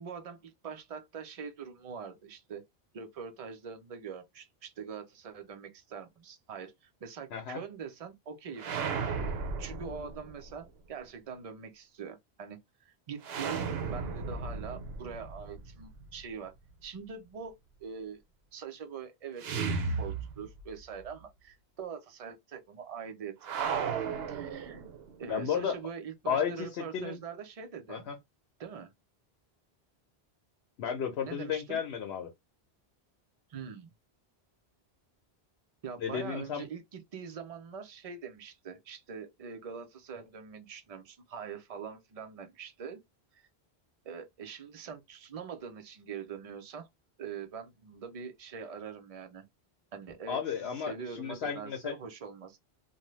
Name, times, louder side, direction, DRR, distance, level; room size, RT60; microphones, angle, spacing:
voice 1, 0.0-2.6 2.9-9.0 9.6-16.5 16.8-17.5 17.8-18.2 18.5-23.7 24.3-24.8 25.2-28.1 28.6-28.9 31.2-31.8 33.5-33.9 35.8-43.0 43.3-43.5 44.0-46.9 47.2-49.4 49.9-52.6, right 6 dB, 45° right, 0.6 m, -43 dB
sound 1, 8.6-10.5 13.2-16.2 19.4-20.8 21.1-21.2 23.4-25.2, right 5 dB, 75° right, 0.9 m, -35 dB
voice 2, 25.3-25.8 26.3-27.2 27.9-28.2 30.8-32.3 36.0-36.6 50.3-51.9, left 7 dB, 80° left, 0.9 m, -33 dB
2.7 x 2.2 x 3.0 m
omnidirectional pair, 1.1 m